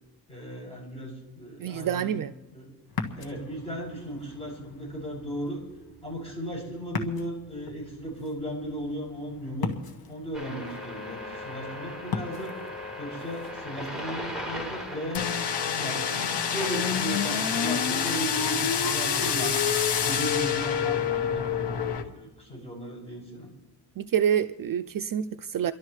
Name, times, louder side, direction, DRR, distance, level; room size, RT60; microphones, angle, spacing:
voice 1, 0.3-2.2 2.5-2.8 3.1-5.6 6.0-9.7 10.1-12.5 13.0-15.3 15.8-19.5 20.0-23.5, equal, 15° left, -4 dB, 7.2 m, -36 dB
voice 2, 1.6-2.3 24.0-25.7, right 9 dB, 55° right, 10 dB, 0.5 m, -27 dB
Ocean, 2.9-14.0, left 6 dB, 60° left, 1.4 m, -40 dB
sound 1, 10.3-18.1, left 1 dB, ahead, 3.8 m, -39 dB
sound 2, 15.1-22.0, left 7 dB, 85° left, 1.2 m, -27 dB
29.0 x 12.0 x 3.2 m, 1.1 s
wide cardioid pair, 100°, 40 cm